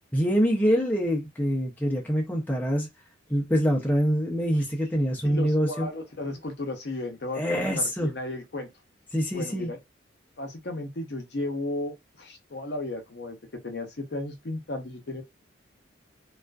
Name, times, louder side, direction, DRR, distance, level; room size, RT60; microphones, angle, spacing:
voice 1, 0.1-2.9 3.3-5.9 7.4-8.1 9.1-9.7, equal, 10° left, 0.5 m, -25 dB
voice 2, 5.3-8.7 9.3-9.8 10.4-13.4 13.6-15.2, left 2 dB, 55° left, 0.6 m, -34 dB
2.4 x 2.3 x 2.2 m
head